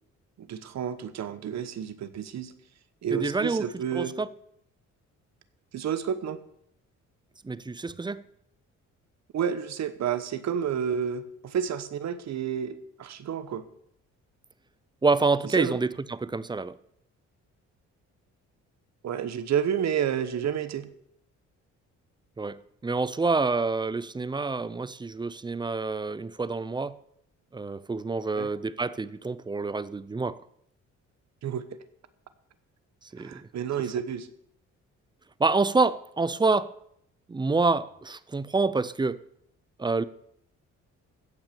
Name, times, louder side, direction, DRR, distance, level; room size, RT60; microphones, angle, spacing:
voice 1, 0.4-2.5 3.0-4.1 5.7-6.4 9.3-13.6 15.6-15.8 19.0-20.9 28.4-28.5 31.4-31.6 33.2-34.3, right 8 dB, 65° right, 1.1 m, -30 dB
voice 2, 3.1-3.7 3.9-4.3 7.4-8.2 15.0-16.7 22.4-27.0 27.5-30.4 33.1-33.5 35.4-36.7 37.3-39.2 39.8-40.0, right 3 dB, 15° right, 0.5 m, -27 dB
16.0 x 6.0 x 6.9 m
cardioid pair, 90°, 30 cm